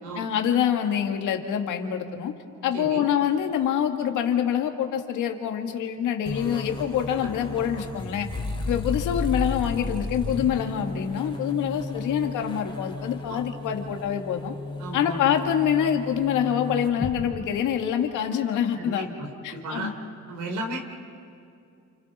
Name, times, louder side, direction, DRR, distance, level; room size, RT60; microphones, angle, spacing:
voice 1, 0.2-2.3 2.6-8.3 8.7-14.5 14.9-19.1 19.4-19.9, left 9 dB, 85° left, 4 dB, 2.0 m, -26 dB
voice 2, 2.7-3.1 7.2-7.3 13.3-13.4 14.8-15.2 18.7-19.9 20.3-20.8, right 1 dB, 80° right, 3 dB, 3.7 m, -34 dB
sound 1, 6.3-17.1, left 2 dB, 15° left, 3.5 m, -33 dB
29.0 x 28.5 x 4.3 m, 2.5 s
cardioid pair, 90°, 30 cm